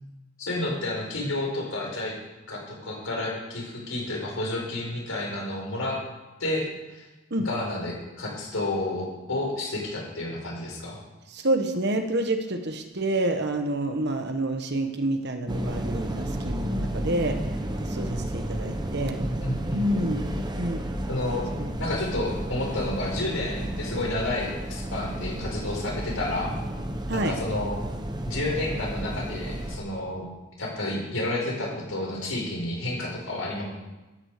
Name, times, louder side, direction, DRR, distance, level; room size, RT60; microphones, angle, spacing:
voice 1, 0.4-2.1 2.5-6.0 6.4-7.1 7.4-11.0 19.4-19.8 21.1-21.5 21.8-26.5 27.1-27.8 28.2-30.2 30.6-33.6, left 2 dB, 75° left, -1 dB, 5.2 m, -30 dB
voice 2, 11.3-17.4 17.8-19.2 19.7-20.2 20.6-20.8 21.6-21.7 27.1-27.3, right 1 dB, 55° right, 6 dB, 1.3 m, -28 dB
sound 1, 15.5-29.8, right 1 dB, 20° right, 1.1 m, -32 dB
13.0 x 9.9 x 6.7 m, 1.1 s
head